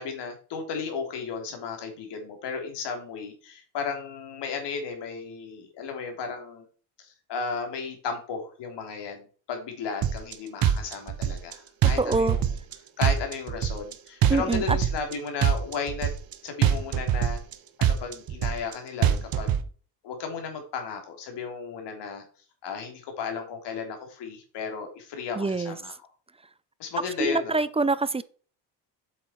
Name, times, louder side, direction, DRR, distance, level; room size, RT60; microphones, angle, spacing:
voice 1, 0.0-6.7 7.0-12.4 13.0-16.1 16.4-17.4 17.8-19.6 20.0-22.2 22.6-25.9 26.8-27.6, left 5 dB, 70° left, 3.2 m, -34 dB
sound 1, 10.0-10.3 10.6-11.5 11.8-12.7 13.0-13.9 14.2-15.1 15.4-16.3 16.6-17.5 17.8-18.7 19.0-19.6, right 9 dB, 50° right, 1.2 m, -23 dB
voice 2, 12.0-12.4 14.3-14.8 25.4-25.8 27.2-28.2, right 3 dB, 15° right, 0.5 m, -25 dB
8.1 x 7.4 x 4.5 m
cardioid pair, 110°, 43 cm